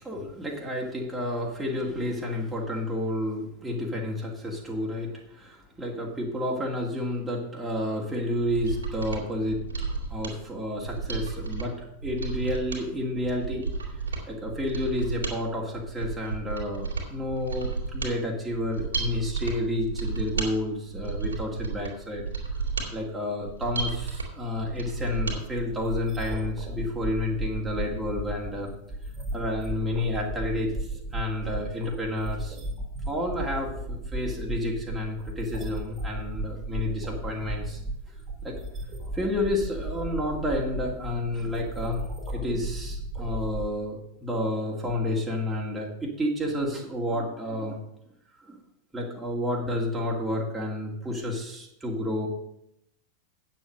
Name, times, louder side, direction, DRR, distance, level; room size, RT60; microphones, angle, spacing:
voice 1, 0.0-9.6 10.1-11.8 12.0-13.7 14.0-22.2 22.5-22.6 22.9-28.7 29.3-32.6 33.1-37.8 38.1-38.2 38.4-38.6 39.1-42.0 42.3-47.8 48.4-48.6 48.9-52.3, left 1 dB, 10° right, -3 dB, 2.4 m, -30 dB
Mechanisms, 8.3-25.4 25.7-25.8, right 4 dB, 70° right, 2.9 m, -33 dB
sound 1, 25.0-43.7, right 1 dB, 30° right, 2.5 m, -35 dB
8.9 x 7.5 x 6.4 m, 0.78 s
figure-of-eight pair, 90°, 0 cm